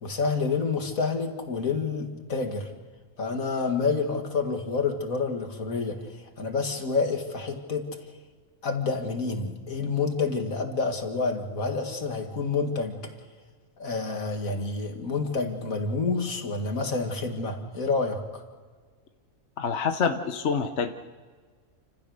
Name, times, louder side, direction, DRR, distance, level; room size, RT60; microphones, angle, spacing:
voice 1, 0.0-2.7 3.2-7.9 8.6-12.9 13.8-18.4, left 4 dB, 75° left, 4 dB, 2.4 m, -28 dB
voice 2, 19.6-20.9, left 5 dB, 55° left, 6 dB, 1.2 m, -26 dB
29.0 x 15.5 x 6.6 m, 1.5 s
omnidirectional pair, 1.4 m